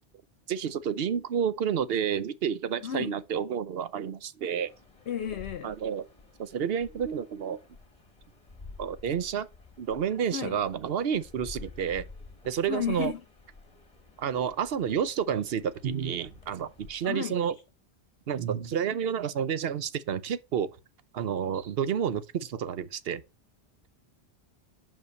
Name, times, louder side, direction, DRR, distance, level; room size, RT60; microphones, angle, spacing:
voice 1, 0.5-4.7 5.6-6.1 6.4-7.6 8.8-9.5 9.8-12.1 12.4-13.1 14.2-17.5 18.3-20.8 21.1-23.2, right 8 dB, 65° right, 0.9 m, -30 dB
voice 2, 2.8-3.1 5.1-5.7 10.3-10.6 12.7-13.2 17.0-17.3, left 8 dB, 75° left, 1.0 m, -32 dB
sound 1, 4.7-17.1, left 3 dB, 30° left, 1.6 m, -51 dB
5.7 x 5.6 x 6.4 m
omnidirectional pair, 1.1 m